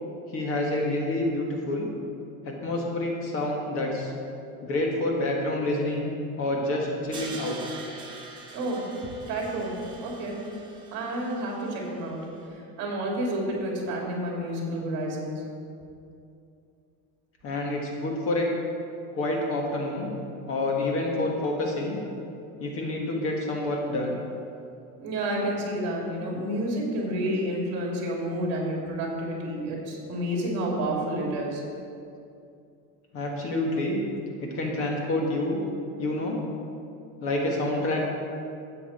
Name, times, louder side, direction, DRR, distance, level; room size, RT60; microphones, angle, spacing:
voice 1, 0.3-1.9 2.4-4.1 4.6-6.1 6.4-7.6 17.4-18.5 19.1-20.1 20.5-22.0 22.6-24.2 33.1-34.0 34.4-35.6 36.0-36.4 37.2-38.1, left 2 dB, 40° left, -1 dB, 1.6 m, -28 dB
Crash cymbal, 7.1-12.2, right 3 dB, 15° right, 1.2 m, -44 dB
voice 2, 8.5-8.8 9.3-9.7 10.0-10.4 10.9-12.2 12.8-15.3 25.0-31.6, right 1 dB, 45° right, -2 dB, 2.8 m, -30 dB
13.0 x 8.7 x 4.3 m, 2.5 s
cardioid pair, 175°, 36 cm